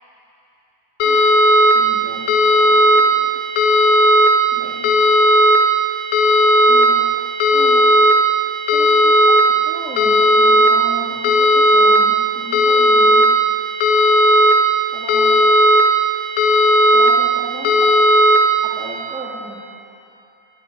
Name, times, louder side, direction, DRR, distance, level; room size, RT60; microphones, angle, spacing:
sound 1, 1.0-1.7 2.3-3.0 3.6-4.3 4.8-5.6 6.1-6.9 7.4-8.1 8.7-9.4 10.0-10.7 11.2-12.0 12.5-13.3 13.8-14.5 15.1-15.8 16.4-17.1 17.7-18.4, equal, 85° left, 4.0 m, -13 dB
voice 1, 1.0-1.4 1.7-3.3 4.5-4.9 6.6-7.1 7.5-7.9 8.7-9.4 9.6-13.2 14.9-15.4 16.9-17.9 18.6-19.6, right 1 dB, ahead, -4 dB, 2.4 m, -35 dB
20.0 x 17.0 x 9.7 m, 2.7 s
omnidirectional pair, 5.0 m